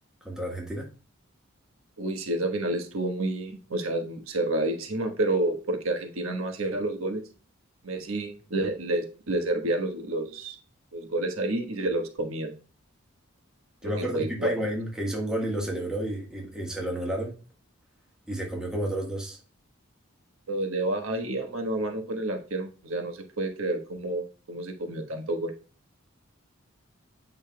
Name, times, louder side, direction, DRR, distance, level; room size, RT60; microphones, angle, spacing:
voice 1, 0.2-0.9 13.8-17.4 18.3-19.4, right 1 dB, 5° right, 1.5 m, -31 dB
voice 2, 2.0-7.2 7.8-10.6 10.9-12.5 13.8-14.6 20.5-25.5, right 2 dB, 85° right, 1.3 m, -29 dB
8.5 x 5.5 x 2.3 m
head